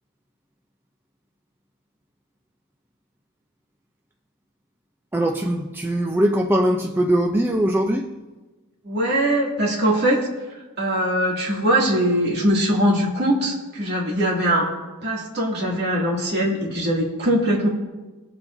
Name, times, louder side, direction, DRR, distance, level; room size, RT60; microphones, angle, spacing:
voice 1, 5.1-8.1, right 1 dB, 10° right, 1 dB, 0.4 m, -21 dB
voice 2, 8.8-10.2 10.8-14.7 15.0-17.7, equal, 50° right, -3 dB, 2.4 m, -21 dB
21.5 x 7.1 x 2.6 m, 1.2 s
head